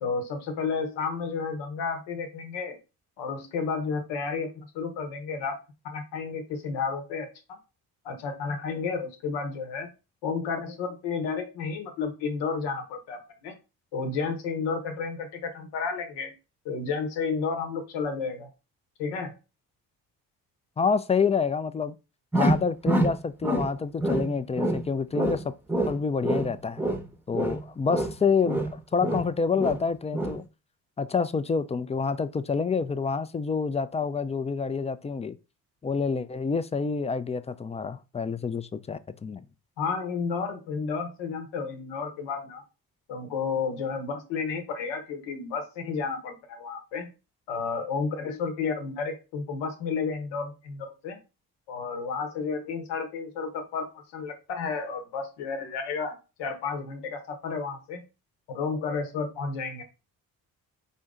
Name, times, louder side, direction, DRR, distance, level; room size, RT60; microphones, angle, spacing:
voice 1, 0.0-2.8 3.2-5.6 5.8-7.6 8.0-9.9 10.2-13.5 13.9-16.3 16.6-18.5 19.0-19.4 39.8-42.6 43.1-47.1 47.5-51.2 51.7-58.0 58.5-59.8, left 5 dB, 85° left, 1.1 m, -32 dB
voice 2, 20.8-22.0 22.3-25.4 25.9-26.8 27.3-30.4 31.0-35.4 35.8-39.4, left 5 dB, 15° left, 0.3 m, -27 dB
sound 1, 22.3-23.7 24.0-24.9 25.1-27.1 27.3-29.3 29.6-29.9 30.1-30.4, right 1 dB, 5° right, 0.7 m, -26 dB
4.3 x 2.6 x 3.6 m
supercardioid pair, 60°, 41 cm